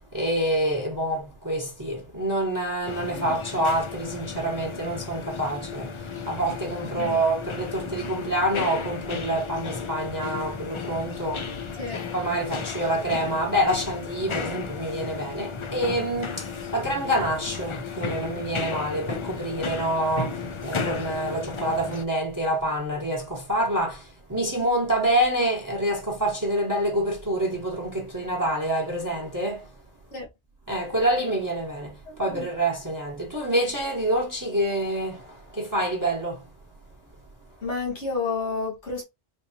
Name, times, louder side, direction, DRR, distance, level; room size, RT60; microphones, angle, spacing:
voice 1, 0.1-11.5 12.1-29.7 30.7-36.4, right 1 dB, 20° right, 0.9 m, -27 dB
sound 1, 2.8-22.0, left 5 dB, 55° left, 0.3 m, -34 dB
voice 2, 37.6-39.0, left 4 dB, 90° left, 1.8 m, -30 dB
4.3 x 2.7 x 2.7 m
omnidirectional pair, 1.1 m